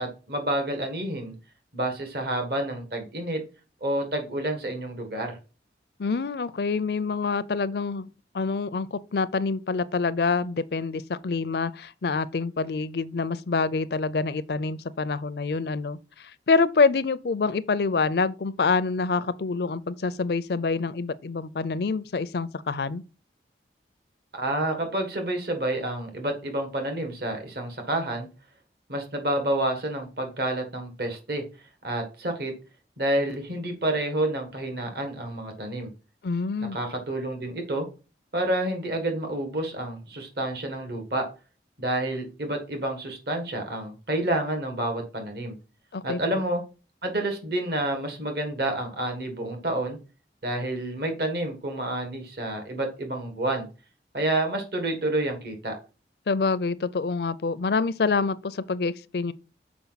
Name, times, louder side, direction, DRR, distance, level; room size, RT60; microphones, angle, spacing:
voice 1, 0.0-1.3 1.7-3.4 3.8-5.4 24.3-28.3 28.9-31.4 31.8-32.5 33.0-35.9 36.7-37.9 38.3-41.2 41.8-45.6 46.0-46.6 47.0-50.0 50.4-53.7 54.1-55.7, right 1 dB, 60° right, 1.6 m, -29 dB
voice 2, 6.0-8.1 8.3-23.0 36.2-36.8 45.9-46.4 56.3-59.3, left 4 dB, 65° left, 0.5 m, -26 dB
7.0 x 4.9 x 4.0 m
head